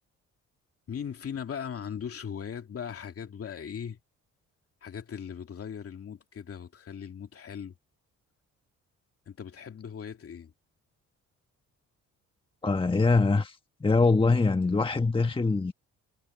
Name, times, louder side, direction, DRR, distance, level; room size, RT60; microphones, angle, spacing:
voice 1, 0.9-4.0 4.8-7.8 9.3-10.5, left 7 dB, 50° left, 2.5 m, -39 dB
voice 2, 12.6-15.7, left 3 dB, 15° left, 1.4 m, -24 dB
cardioid pair, 90°, 30 cm